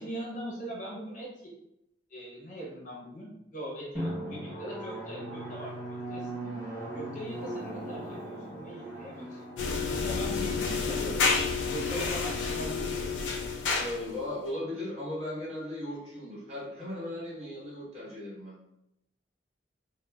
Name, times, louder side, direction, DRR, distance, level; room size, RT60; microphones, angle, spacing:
voice 1, 0.0-1.5 2.1-6.5 6.9-9.4 9.7-11.2 11.6-13.1, right 1 dB, 45° left, -3 dB, 0.7 m, -41 dB
Drum, 3.9-13.2, right 1 dB, 15° left, 1.3 m, -40 dB
sound 1, 9.6-14.2, left 4 dB, 85° left, 0.4 m, -30 dB
voice 2, 13.8-18.6, left 1 dB, 35° right, -7 dB, 1.1 m, -37 dB
2.9 x 2.0 x 2.2 m, 0.83 s
head